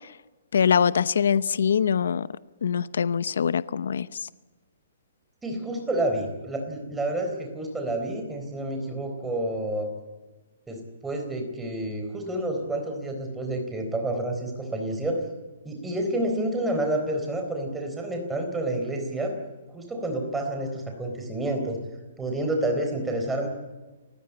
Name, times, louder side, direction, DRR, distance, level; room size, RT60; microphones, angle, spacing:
voice 1, 0.5-2.3 2.6-4.1, left 7 dB, 80° left, 17 dB, 0.8 m, -23 dB
voice 2, 5.4-9.9 10.7-15.2 15.6-19.3 19.7-21.8 22.2-23.5, right 1 dB, 5° right, 3 dB, 4.1 m, -29 dB
29.0 x 15.5 x 8.9 m, 1.2 s
hypercardioid pair, 165°, 0 cm